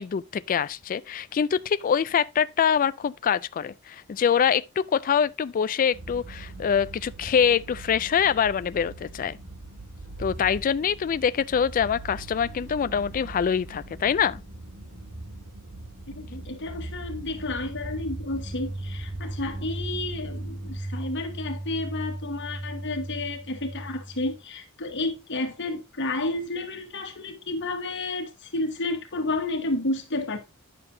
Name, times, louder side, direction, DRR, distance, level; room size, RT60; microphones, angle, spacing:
voice 1, 0.0-9.4 10.2-14.4, left 7 dB, 40° left, 0.3 m, -24 dB
sound 1, 5.9-20.8, right 2 dB, 85° right, 2.6 m, -42 dB
voice 2, 16.1-30.4, left 2 dB, 55° left, 1.4 m, -31 dB
sound 2, 16.7-24.4, right 1 dB, 20° right, 0.6 m, -37 dB
9.8 x 6.8 x 2.7 m
head